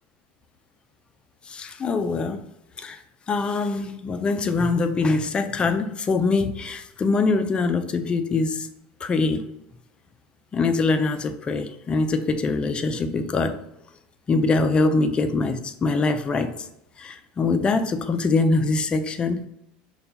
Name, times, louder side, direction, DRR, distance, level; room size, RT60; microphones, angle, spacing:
voice 1, 1.5-2.4 2.8-3.0 3.3-8.7 9.0-9.5 10.5-13.6 14.3-16.7 17.0-19.5, left 3 dB, 25° left, 0.3 m, -23 dB
5.5 x 2.3 x 2.7 m
supercardioid pair, 120°, 4 cm